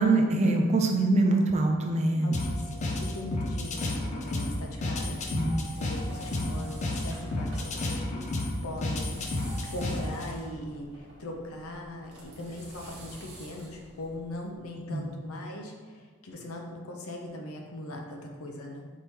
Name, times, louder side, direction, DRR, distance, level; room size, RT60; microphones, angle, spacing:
voice 1, 0.0-2.4 5.3-5.5 6.5-6.6 14.9-15.1, right 2 dB, 30° right, 3 dB, 0.5 m, -24 dB
voice 2, 2.2-5.2 5.8-8.2 8.6-9.2 9.7-18.9, left 1 dB, 85° left, 1 dB, 0.6 m, -40 dB
sound 1, 2.3-10.3, left 1 dB, 35° left, 0.4 m, -32 dB
sound 2, 4.5-14.7, right 1 dB, 55° right, 1.1 m, -49 dB
4.5 x 3.6 x 2.9 m, 1.4 s
head